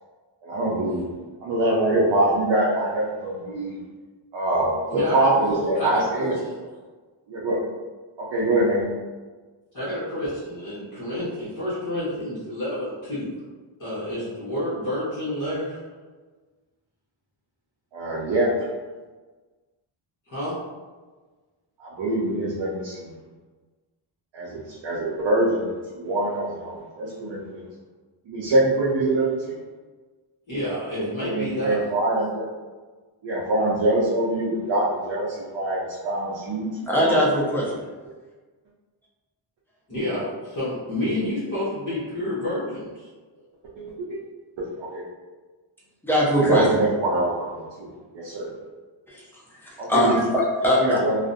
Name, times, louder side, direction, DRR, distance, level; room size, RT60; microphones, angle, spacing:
voice 1, 0.4-1.1 1.4-3.8 4.3-6.3 7.3-7.6 8.2-8.9 17.9-18.5 21.8-23.1 24.3-25.7 25.9-27.6 28.3-29.5 31.2-32.5 33.2-37.2 43.8-43.9 44.1-44.2 44.6-45.0 46.2-48.5 49.8-50.2 50.7-51.2, right 1 dB, 65° right, -6 dB, 0.6 m, -24 dB
voice 2, 4.9-6.5 9.7-13.3 13.8-15.8 20.3-20.6 30.5-31.9 39.9-43.1, left 1 dB, 40° left, -11 dB, 0.8 m, -29 dB
voice 3, 36.9-37.7 46.0-46.7 49.1-49.2 49.6-50.9, equal, 5° left, -6 dB, 0.4 m, -21 dB
2.4 x 2.0 x 2.5 m, 1.3 s
wide cardioid pair, 130°, 48 cm